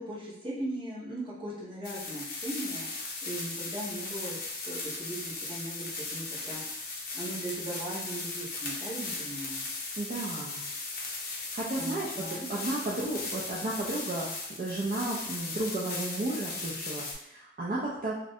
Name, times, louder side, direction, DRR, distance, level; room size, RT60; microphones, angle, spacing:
voice 1, 0.0-2.9 3.2-4.4 4.6-6.6 7.1-9.7 11.8-12.5, right 1 dB, 30° right, -9 dB, 0.9 m, -38 dB
sound 1, 1.8-17.1, left 3 dB, 55° left, 0.6 m, -37 dB
voice 2, 10.0-10.6 11.5-14.3 14.6-18.1, right 2 dB, 50° right, -6 dB, 0.3 m, -33 dB
2.5 x 2.1 x 2.6 m, 0.79 s
head